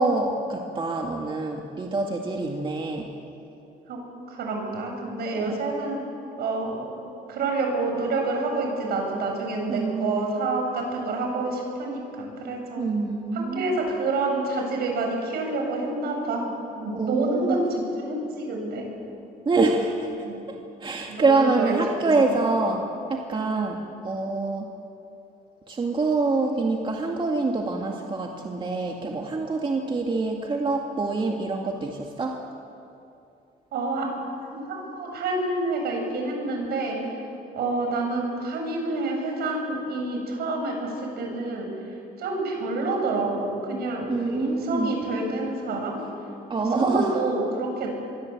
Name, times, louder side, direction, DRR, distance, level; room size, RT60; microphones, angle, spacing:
voice 1, 0.0-3.1 5.4-5.6 9.7-10.3 12.8-13.8 16.9-17.6 19.5-20.1 20.8-23.8 24.0-24.7 25.7-32.4 44.1-44.9 46.5-47.1, right 3 dB, 30° right, 1 dB, 2.1 m, -25 dB
voice 2, 4.3-6.0 6.4-6.9 7.3-12.9 13.3-16.5 16.8-18.9 20.2-20.4 21.1-21.7 22.2-22.4 23.3-23.7 33.7-34.1 34.5-37.0 37.5-41.7 42.2-46.0 46.6-47.9, right 2 dB, 70° right, 1 dB, 7.8 m, -28 dB
25.5 x 23.0 x 8.4 m, 2.8 s
cardioid pair, 110°, 17 cm